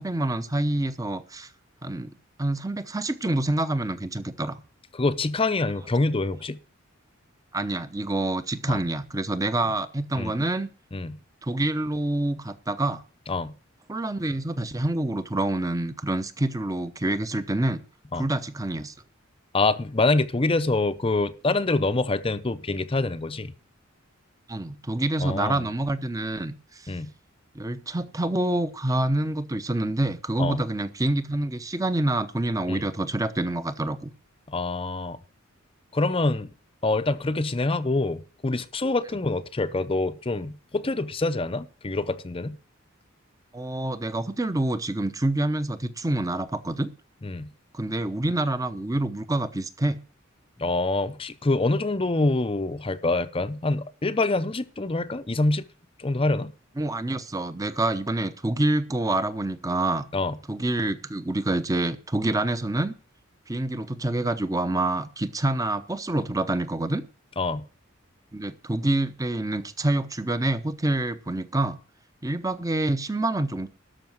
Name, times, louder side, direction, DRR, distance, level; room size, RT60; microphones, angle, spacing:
voice 1, 0.0-1.5 1.8-4.6 7.5-10.7 11.4-13.0 13.9-17.8 18.1-18.9 24.5-26.9 27.5-34.1 43.5-46.9 47.7-50.0 56.8-60.1 60.5-62.9 63.5-67.0 68.3-71.8 72.2-73.7, right 2 dB, 15° right, 0.8 m, -27 dB
voice 2, 4.9-6.6 8.7-8.8 10.2-10.3 10.9-11.2 13.3-13.5 18.1-18.2 19.5-23.5 25.2-25.7 26.9-27.1 30.4-30.6 32.7-32.8 34.5-35.2 35.9-36.5 36.8-42.6 47.2-47.5 50.6-55.6 56.0-56.5 60.1-60.4 67.4-67.6, left 2 dB, 25° left, 0.6 m, -25 dB
13.0 x 5.8 x 7.7 m
head